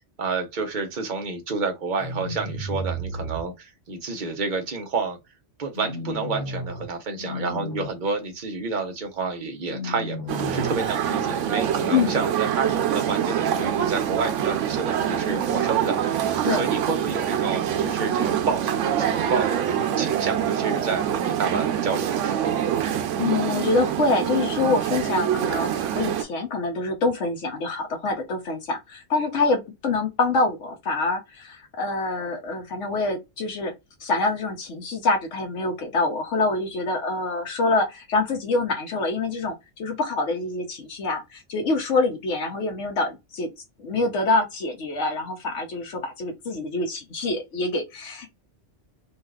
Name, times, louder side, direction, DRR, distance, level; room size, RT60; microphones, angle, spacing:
voice 1, 0.2-5.2 5.6-22.6, right 4 dB, 45° right, 0.9 m, -30 dB
sound 1, 2.0-3.4 5.7-6.8 7.2-7.9 9.7-10.8, equal, 60° left, 1.2 m, -33 dB
sound 2, 10.3-26.2, right 9 dB, 90° right, 0.9 m, -25 dB
voice 2, 23.2-33.7 34.0-43.5 43.8-48.3, left 3 dB, 80° left, 1.1 m, -25 dB
3.9 x 2.4 x 2.4 m
omnidirectional pair, 1.2 m